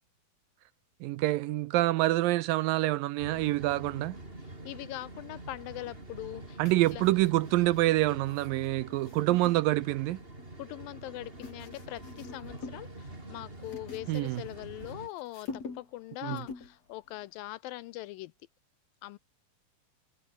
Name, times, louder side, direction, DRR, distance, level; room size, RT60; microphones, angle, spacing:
voice 1, 1.0-4.2 6.6-10.2 14.1-14.4 16.2-16.4, right 17 dB, 80° right, 2.1 m, -26 dB
sound 1, 3.2-15.1, right 2 dB, 15° right, 4.8 m, -46 dB
voice 2, 4.6-6.6 6.9-7.0 10.6-18.3 19.0-19.2, left 17 dB, 80° left, 2.2 m, -42 dB
sound 2, 6.6-10.5 11.1-12.9 13.2-14.9 15.2-16.0 16.3-16.8 17.1-17.3, left 4 dB, 40° left, 5.6 m, -46 dB
omnidirectional pair, 4.4 m